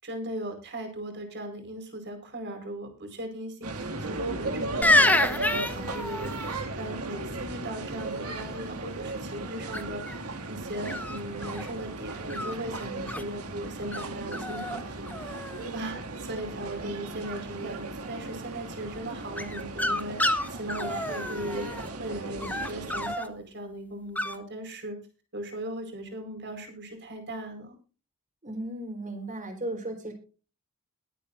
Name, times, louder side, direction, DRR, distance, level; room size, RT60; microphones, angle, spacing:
voice 1, 0.0-25.0 25.3-27.8, right 1 dB, 50° right, 4 dB, 4.6 m, -38 dB
sound 1, 3.6-23.1, right 2 dB, 80° right, 2.2 m, -36 dB
sound 2, 4.8-6.6 9.7-10.1 10.9-11.7 12.3-13.2 13.9-14.1 14.3-14.8 15.1-15.7 19.4-21.9 22.4-23.3 24.2-24.4, left 1 dB, 5° left, 1.1 m, -28 dB
voice 2, 28.4-30.1, right 1 dB, 35° right, 4 dB, 4.2 m, -35 dB
22.0 x 8.7 x 2.6 m, 0.35 s
head